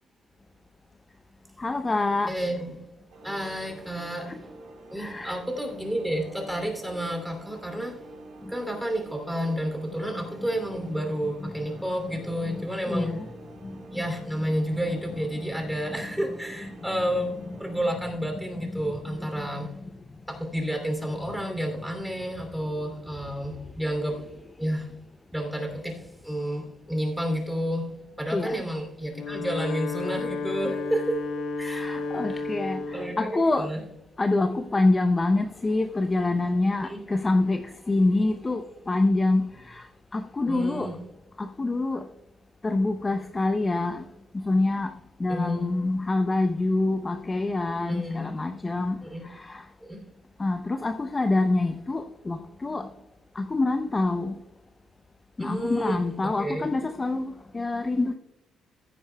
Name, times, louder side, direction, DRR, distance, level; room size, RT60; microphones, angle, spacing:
voice 1, 1.6-2.3 4.3-4.4 5.0-5.4 10.1-10.2 11.4-11.5 12.4-12.6 12.9-13.2 13.6-14.0 18.6-19.2 28.3-28.6 31.6-33.7 34.2-39.9 40.1-40.9 41.4-42.0 42.6-44.1 44.3-44.9 45.2-49.0 49.2-49.6 50.4-52.9 53.4-54.4 55.4-58.1, left 2 dB, 25° left, 0.6 m, -26 dB
voice 2, 2.3-2.7 3.2-4.4 4.9-8.0 8.5-13.1 13.9-17.3 17.6-19.7 20.3-24.3 24.6-24.9 25.3-27.8 28.2-31.2 31.6-31.9 32.9-33.8 36.8-37.0 40.5-40.9 45.3-45.7 47.9-48.3 49.0-49.2 49.8-50.0 55.4-56.7, equal, 5° right, 2.8 m, -30 dB
sound 1, 3.1-17.8, right 2 dB, 80° right, 3.8 m, -47 dB
Wind instrument woodwind instrument, 29.0-33.2, left 4 dB, 80° left, 1.4 m, -32 dB
15.5 x 9.3 x 2.2 m
cardioid pair, 90°, 0 cm